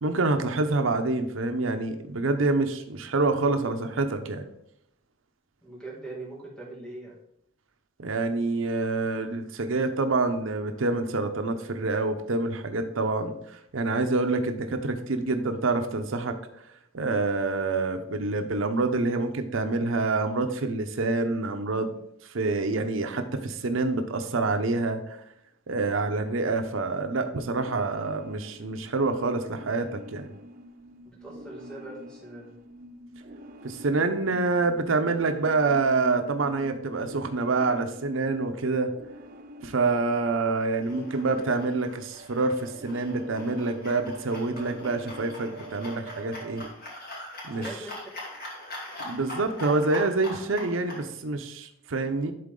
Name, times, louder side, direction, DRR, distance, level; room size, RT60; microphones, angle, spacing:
voice 1, 0.0-4.4 8.0-16.4 16.9-21.9 22.3-25.2 25.7-30.3 33.6-38.9 39.6-46.6 47.4-47.6 49.0-52.3, right 3 dB, 90° right, 7 dB, 0.7 m, -27 dB
voice 2, 5.6-7.2 31.0-32.5 47.5-48.1, right 2 dB, 5° left, -4 dB, 2.4 m, -41 dB
sound 1, 27.0-46.7, right 1 dB, 45° right, 0.5 m, -46 dB
sound 2, 40.6-51.0, left 1 dB, 50° left, 2.4 m, -42 dB
11.0 x 4.1 x 3.8 m, 0.76 s
head